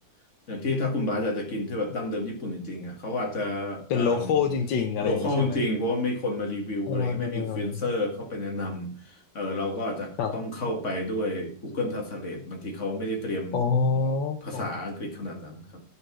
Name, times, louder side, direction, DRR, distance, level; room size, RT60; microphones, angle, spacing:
voice 1, 0.5-4.4 5.0-13.6 14.4-15.8, left 2 dB, 40° left, 2 dB, 2.3 m, -30 dB
voice 2, 3.9-5.6 6.9-7.8 10.2-10.3 13.5-14.7, left 5 dB, 80° left, 4 dB, 1.6 m, -26 dB
10.0 x 5.5 x 6.0 m, 0.43 s
omnidirectional pair, 2.0 m